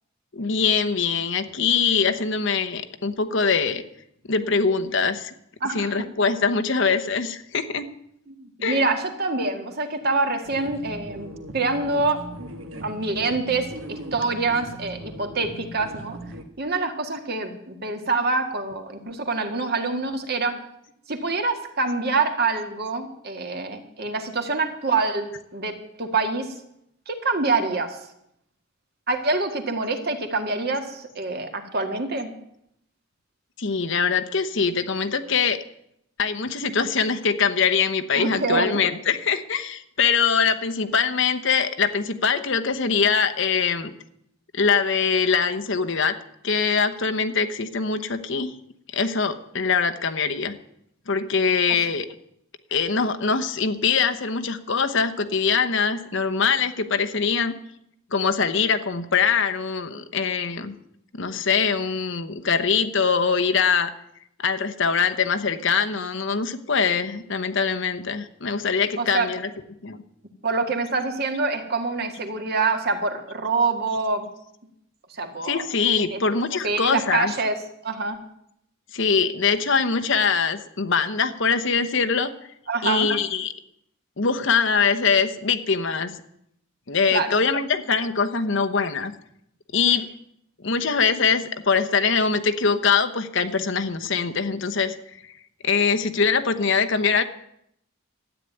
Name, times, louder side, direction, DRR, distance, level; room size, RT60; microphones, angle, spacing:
voice 1, 0.3-3.8 4.3-5.3 5.7-7.8 8.6-8.8 33.6-35.6 36.2-43.9 44.5-46.2 46.4-48.5 48.9-50.6 51.1-52.1 52.7-57.5 58.1-60.7 61.1-63.9 64.4-69.4 69.8-70.0 75.4-77.3 78.9-82.3 82.8-83.5 84.2-86.1 86.9-89.1 89.7-90.1 90.6-95.3 95.6-97.2, left 5 dB, 60° left, 8 dB, 1.0 m, -23 dB
voice 2, 5.6-6.0 8.3-12.2 12.8-16.2 16.6-20.6 21.1-26.5 27.1-28.0 29.1-32.3 38.2-38.8 51.7-51.8 69.0-69.3 70.4-74.3 75.1-75.7 76.1-76.2 76.6-77.6 77.8-78.2 82.7-83.1 87.1-87.4, right 3 dB, 50° right, 5 dB, 1.9 m, -26 dB
sound 1, 10.4-16.4, right 1 dB, 65° right, 1.7 m, -39 dB
13.0 x 9.2 x 9.2 m, 0.75 s
head